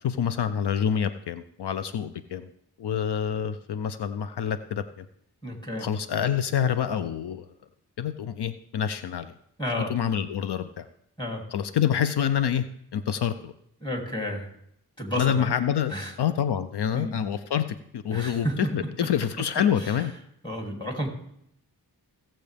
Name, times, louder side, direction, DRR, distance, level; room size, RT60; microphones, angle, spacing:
voice 1, 0.0-2.5 2.8-5.1 5.8-7.5 8.0-9.3 9.9-10.9 11.5-12.7 12.9-13.5 15.2-18.5 18.7-20.1, left 8 dB, 75° left, 11 dB, 0.6 m, -27 dB
voice 2, 5.4-5.9 9.6-9.9 11.2-11.4 13.8-14.5 15.0-15.5 15.9-16.1 16.9-17.2 18.1-19.1 19.8-20.1 20.4-21.1, equal, 10° left, 1 dB, 2.7 m, -31 dB
17.0 x 7.5 x 3.4 m, 0.73 s
cardioid pair, 65°, 40 cm